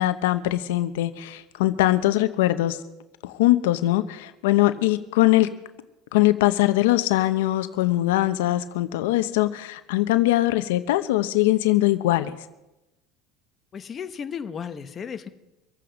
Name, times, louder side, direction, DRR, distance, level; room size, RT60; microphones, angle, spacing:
voice 1, 0.0-2.8 3.2-5.5 6.1-12.3, left 16 dB, 90° left, 11 dB, 0.8 m, -21 dB
voice 2, 13.7-15.3, left 7 dB, 30° left, 8 dB, 1.1 m, -34 dB
24.5 x 8.6 x 5.2 m, 0.99 s
supercardioid pair, 135°, 0 cm